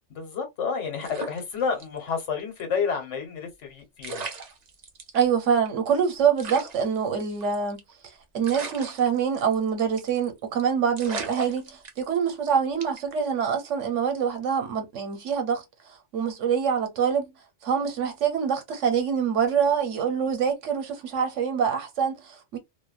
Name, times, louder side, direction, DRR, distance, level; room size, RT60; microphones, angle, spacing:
voice 1, 0.1-4.2, left 5 dB, 80° left, 1.3 m, -30 dB
sound 1, 1.0-2.2 2.5-2.6 3.7-3.8 4.0-5.2 5.7-5.8 5.9-6.0 6.4-7.9 8.4-9.7 10.0-10.3 10.6-10.7 11.0-12.3 12.8-13.1, right 4 dB, 50° right, 0.5 m, -37 dB
voice 2, 5.1-7.8 8.3-15.6 16.1-17.3 17.6-22.6, right 7 dB, 90° right, 1.1 m, -25 dB
2.6 x 2.1 x 2.4 m
omnidirectional pair, 1.2 m